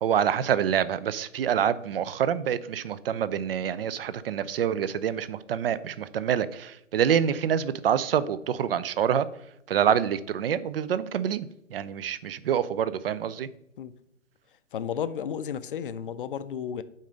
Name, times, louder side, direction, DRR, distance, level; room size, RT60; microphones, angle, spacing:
voice 1, 0.0-9.3 9.7-13.5, right 9 dB, 50° right, 16 dB, 0.5 m, -26 dB
voice 2, 14.7-16.8, left 8 dB, 45° left, 13 dB, 0.5 m, -33 dB
8.9 x 3.9 x 5.1 m, 0.79 s
figure-of-eight pair, 135°, 38 cm